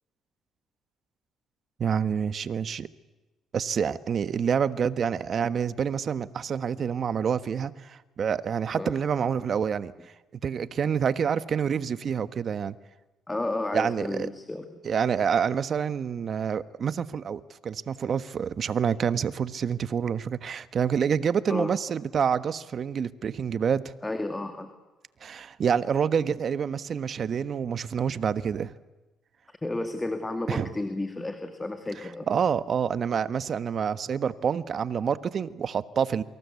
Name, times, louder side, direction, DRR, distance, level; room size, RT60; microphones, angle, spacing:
voice 1, 1.8-2.9 3.5-9.9 10.4-12.8 13.7-14.3 14.8-23.9 25.2-28.7 30.5-30.7 32.3-36.2, right 7 dB, 50° right, 14 dB, 1.3 m, -27 dB
voice 2, 13.3-14.8 21.5-21.7 24.0-24.7 29.6-32.3, left 2 dB, 15° left, 7 dB, 2.5 m, -32 dB
28.0 x 25.0 x 8.4 m, 1.1 s
cardioid pair, 90°, 0 cm